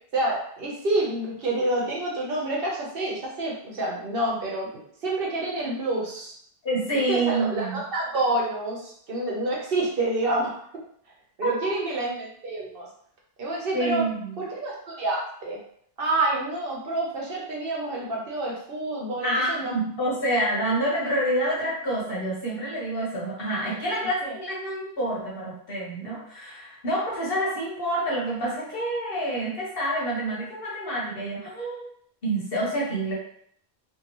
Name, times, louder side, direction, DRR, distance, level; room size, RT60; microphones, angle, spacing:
voice 1, 0.1-4.7 5.0-6.3 7.1-10.6 11.4-12.9 13.4-14.0 14.4-14.7 15.0-15.6 16.0-19.7 24.0-24.3, right 2 dB, 65° right, -3 dB, 1.0 m, -28 dB
voice 2, 6.6-7.8 13.7-14.4 19.2-31.8 32.2-33.1, right 1 dB, 65° left, -5 dB, 1.1 m, -27 dB
2.8 x 2.6 x 2.9 m, 0.65 s
omnidirectional pair, 1.1 m